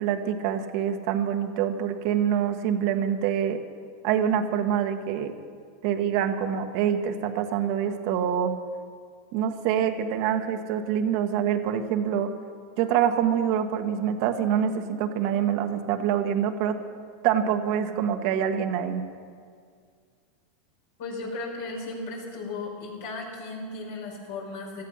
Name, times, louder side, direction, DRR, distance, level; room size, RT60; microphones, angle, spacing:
voice 1, 0.0-3.6 4.0-5.3 5.8-8.5 9.3-12.3 12.8-16.8 17.2-19.0, right 9 dB, 60° right, 6 dB, 1.4 m, -25 dB
voice 2, 21.0-24.8, left 3 dB, 75° left, -1 dB, 5.4 m, -35 dB
17.0 x 14.0 x 5.7 m, 2.1 s
hypercardioid pair, 105°, 0 cm